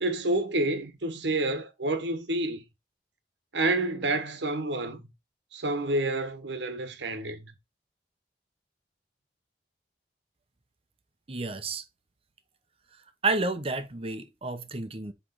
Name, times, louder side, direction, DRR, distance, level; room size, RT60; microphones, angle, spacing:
voice 1, 0.0-2.6 3.5-5.0 5.5-7.5, right 2 dB, 80° right, 1.2 m, -29 dB
voice 2, 11.3-11.8 13.2-15.1, right 3 dB, 30° right, 0.8 m, -30 dB
7.6 x 3.3 x 4.0 m
head